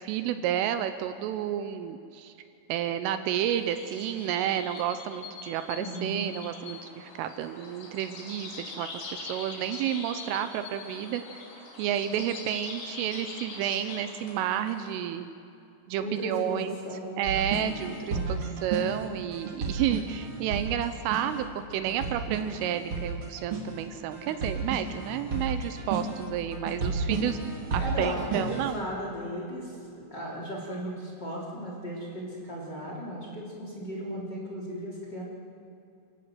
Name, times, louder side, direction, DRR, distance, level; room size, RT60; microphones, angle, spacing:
voice 1, 0.0-2.3 2.7-11.4 11.8-15.3 15.9-16.7 17.2-27.4 27.7-28.8, right 10 dB, 80° right, 10 dB, 3.3 m, -31 dB
sound 1, 3.4-15.0, left 3 dB, 55° left, 4.8 m, -43 dB
voice 2, 5.8-6.2 16.0-17.2 18.1-18.5 27.8-35.2, equal, 25° left, -4 dB, 3.4 m, -36 dB
sound 2, 17.2-28.8, right 3 dB, 35° right, 2.3 m, -33 dB
28.0 x 17.0 x 7.8 m, 2.6 s
omnidirectional pair, 5.9 m